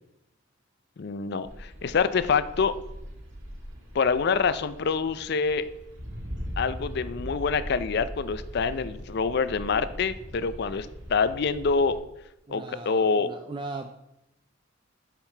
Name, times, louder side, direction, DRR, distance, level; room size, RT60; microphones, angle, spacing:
voice 1, 1.0-2.8 3.9-5.7 6.6-12.0 12.5-13.3, left 5 dB, 55° left, 14 dB, 0.4 m, -26 dB
sound 1, 1.4-12.0, equal, 75° right, 1.9 m, -40 dB
voice 2, 12.5-14.0, right 3 dB, 25° right, 6 dB, 0.3 m, -38 dB
7.1 x 5.8 x 4.4 m, 0.87 s
head